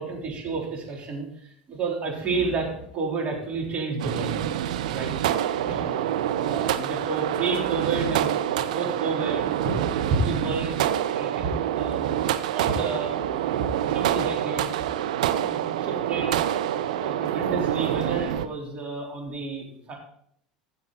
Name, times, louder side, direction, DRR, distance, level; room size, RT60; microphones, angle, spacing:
voice 1, 0.0-4.5 4.9-5.1 5.6-6.1 6.4-10.8 11.1-12.2 12.5-14.7 15.3-16.4 17.0-19.9, right 3 dB, 35° right, -1 dB, 3.9 m, -30 dB
sound 1, 4.0-18.5, right 11 dB, 65° right, 0.6 m, -26 dB
15.0 x 7.0 x 4.1 m, 0.68 s
figure-of-eight pair, 75°, 4 cm